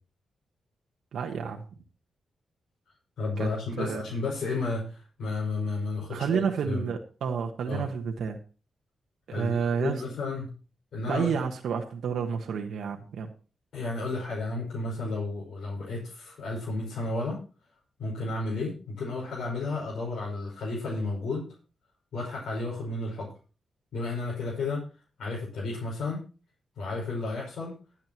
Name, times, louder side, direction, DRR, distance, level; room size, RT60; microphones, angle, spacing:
voice 1, 1.1-1.6 3.4-3.5 3.8-4.0 6.1-8.4 9.3-10.0 11.1-13.3, right 6 dB, 80° right, 2 dB, 1.3 m, -30 dB
voice 2, 3.2-6.8 7.7-7.9 9.3-10.5 10.9-11.3 13.7-17.4 18.0-21.5 22.1-23.3 23.9-24.8 25.2-26.2 26.8-27.7, left 3 dB, 75° left, -5 dB, 5.3 m, -32 dB
21.0 x 7.6 x 3.0 m, 0.35 s
cardioid pair, 75°, 0 cm